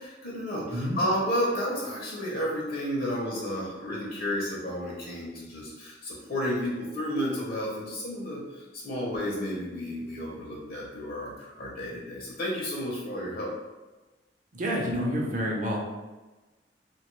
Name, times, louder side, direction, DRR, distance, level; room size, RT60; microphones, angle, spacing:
voice 1, 0.0-13.5, equal, 55° left, -4 dB, 0.6 m, -32 dB
voice 2, 14.5-15.8, equal, 45° right, -1 dB, 0.5 m, -28 dB
2.7 x 2.2 x 3.0 m, 1.2 s
head